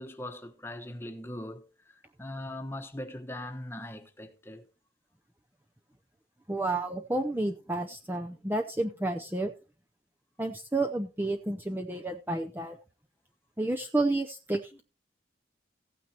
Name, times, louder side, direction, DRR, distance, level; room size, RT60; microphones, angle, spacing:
voice 1, 0.0-4.7, left 1 dB, 15° left, 1.1 m, -40 dB
voice 2, 6.5-9.5 10.4-12.8 13.6-14.8, right 2 dB, 10° right, 0.6 m, -30 dB
15.5 x 9.1 x 2.9 m
head